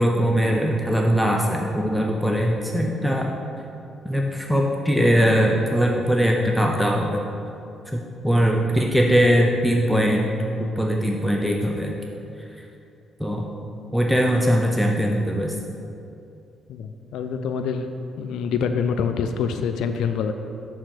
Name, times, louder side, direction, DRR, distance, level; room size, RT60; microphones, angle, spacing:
voice 1, 0.0-3.3 4.0-7.2 7.9-10.3 10.6-12.0 12.4-12.6 13.2-13.5 13.9-15.6, equal, ahead, -1 dB, 0.6 m, -21 dB
voice 2, 16.7-20.3, left 6 dB, 80° left, 7 dB, 0.3 m, -26 dB
6.5 x 3.8 x 6.1 m, 2.6 s
cardioid pair, 90°, 0 cm